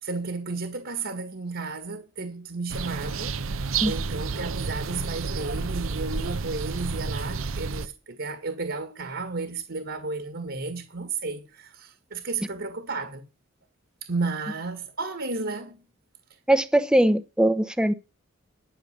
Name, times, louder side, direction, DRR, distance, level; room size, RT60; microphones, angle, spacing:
voice 1, 0.0-13.2 14.0-15.8, right 3 dB, 60° right, 1.8 m, -33 dB
sound 1, 2.7-7.9, right 4 dB, 80° right, 0.8 m, -30 dB
voice 2, 16.5-17.9, right 1 dB, 5° right, 0.9 m, -21 dB
11.5 x 6.8 x 6.7 m
head